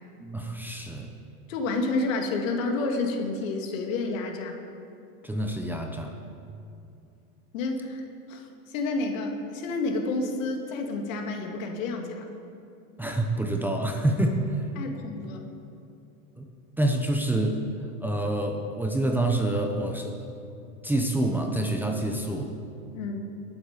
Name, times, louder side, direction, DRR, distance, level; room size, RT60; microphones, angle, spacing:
voice 1, 0.2-1.1 5.2-6.2 13.0-14.6 16.4-16.5 16.8-17.6 18.0-20.1 20.8-22.5, right 1 dB, 5° right, 2 dB, 0.9 m, -27 dB
voice 2, 1.5-4.6 7.5-12.3 14.8-15.5 22.9-23.2, left 3 dB, 70° left, 3 dB, 2.2 m, -30 dB
21.5 x 7.9 x 5.2 m, 2.5 s
supercardioid pair, 125°, 42 cm